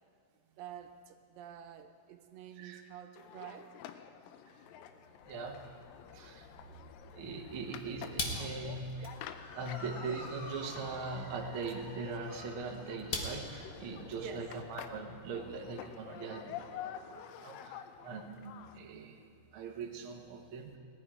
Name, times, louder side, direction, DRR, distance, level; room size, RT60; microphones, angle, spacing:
voice 1, 0.6-3.7 14.1-14.4, right 9 dB, 85° right, 7 dB, 2.5 m, -48 dB
sound 1, 3.2-18.8, left 10 dB, 90° left, 2.4 m, -49 dB
sound 2, 5.1-15.6, left 2 dB, 60° left, 0.9 m, -46 dB
voice 2, 5.2-5.7 6.1-6.8 7.1-9.1 9.5-19.2 19.5-20.8, right 4 dB, 60° right, 1 dB, 1.5 m, -41 dB
Motor vehicle (road) / Siren, 9.1-17.7, left 1 dB, 35° left, 1.4 m, -53 dB
18.0 x 11.5 x 4.9 m, 2.6 s
omnidirectional pair, 3.9 m